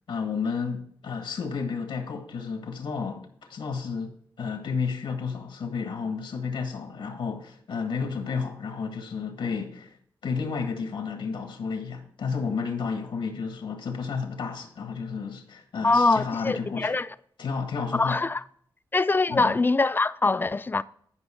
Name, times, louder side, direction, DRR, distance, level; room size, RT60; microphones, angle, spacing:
voice 1, 0.1-4.1 4.4-10.0 10.2-17.0 17.4-18.2 19.3-19.5, left 5 dB, 90° left, 1.5 m, -31 dB
voice 2, 15.8-17.1 17.9-18.4 18.9-20.8, left 3 dB, 25° left, 0.3 m, -23 dB
10.5 x 5.4 x 4.4 m
wide cardioid pair, 105°, 8 cm